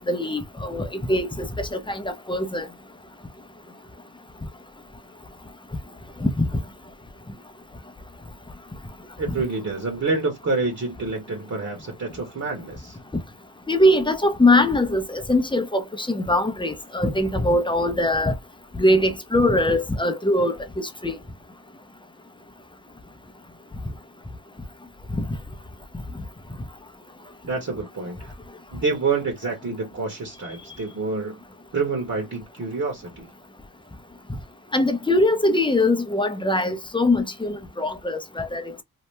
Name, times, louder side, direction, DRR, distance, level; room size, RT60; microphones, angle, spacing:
voice 1, 0.0-2.7 6.2-6.5 13.7-18.4 18.8-21.2 25.1-25.2 34.7-38.7, left 1 dB, 15° left, 0.6 m, -22 dB
voice 2, 9.2-13.0 27.4-28.3 28.7-31.4 31.7-33.3, right 4 dB, 50° right, 1.2 m, -27 dB
2.9 x 2.1 x 3.2 m
wide cardioid pair, 75°, 36 cm